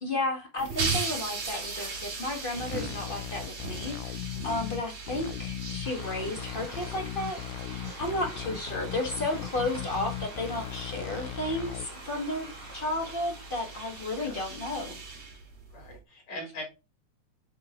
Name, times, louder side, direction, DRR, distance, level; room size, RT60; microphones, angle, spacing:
voice 1, 0.0-12.5 12.7-15.0, left 1 dB, 35° left, 0.9 m, -33 dB
sound 1, 0.6-16.0, right 4 dB, 60° right, 3.8 m, -39 dB
sound 2, 2.6-11.9, left 12 dB, 85° left, 2.0 m, -38 dB
sound 3, 5.8-14.8, right 1 dB, 10° right, 1.3 m, -47 dB
voice 2, 15.7-16.6, left 1 dB, 60° left, 4.7 m, -43 dB
8.6 x 4.1 x 3.7 m
omnidirectional pair, 3.4 m